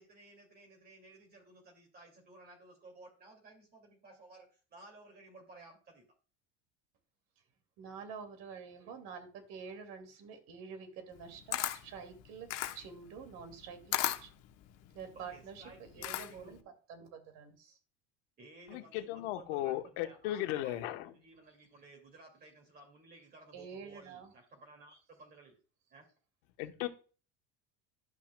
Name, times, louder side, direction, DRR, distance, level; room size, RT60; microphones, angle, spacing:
voice 1, 0.0-6.1 15.1-16.6 18.4-25.5 25.9-26.1, right 2 dB, 30° right, 2 dB, 2.2 m, -56 dB
voice 2, 7.8-14.3 14.9-16.6 16.9-17.8 23.5-24.3, right 6 dB, 60° right, 7 dB, 2.3 m, -48 dB
Camera, 11.1-16.6, left 14 dB, 55° left, 0.9 m, -37 dB
voice 3, 18.7-21.1 26.6-26.9, left 14 dB, 75° left, 7 dB, 1.1 m, -36 dB
12.0 x 5.8 x 2.2 m, 0.37 s
supercardioid pair, 130°, 31 cm